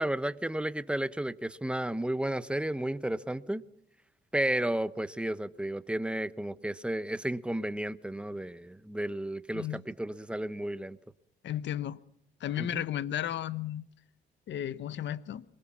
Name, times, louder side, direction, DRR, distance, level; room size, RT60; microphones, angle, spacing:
voice 1, 0.0-3.6 4.3-11.0 12.6-12.8, right 1 dB, 5° right, 0.9 m, -32 dB
voice 2, 11.4-12.0 12.4-13.8 14.5-15.4, left 11 dB, 65° left, 0.9 m, -34 dB
22.5 x 20.0 x 6.0 m
cardioid pair, 90°, 20 cm